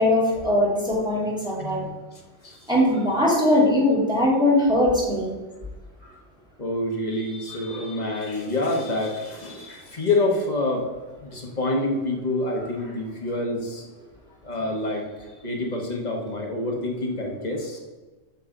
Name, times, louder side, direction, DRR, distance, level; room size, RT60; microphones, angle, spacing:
voice 1, 0.0-1.9 2.7-5.3, left 1 dB, 5° right, -6 dB, 2.0 m, -20 dB
voice 2, 6.6-10.8 11.2-13.8 14.4-17.8, left 2 dB, 35° left, 0 dB, 1.1 m, -27 dB
7.0 x 3.9 x 4.9 m, 1.2 s
omnidirectional pair, 1.4 m